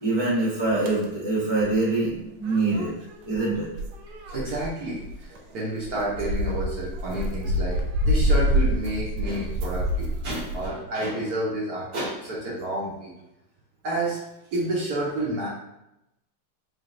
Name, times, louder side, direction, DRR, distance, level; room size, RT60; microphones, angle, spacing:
voice 1, 0.0-2.9 3.3-3.7, right 2 dB, 40° left, -9 dB, 0.3 m, -24 dB
sound 1, 0.9-1.1 2.4-5.4 5.8-10.7, equal, 80° right, 1.4 m, -27 dB
voice 2, 4.3-13.1 13.8-14.2 14.5-15.5, right 1 dB, 60° right, -5 dB, 1.0 m, -30 dB
4.0 x 3.3 x 2.5 m, 0.89 s
omnidirectional pair, 2.3 m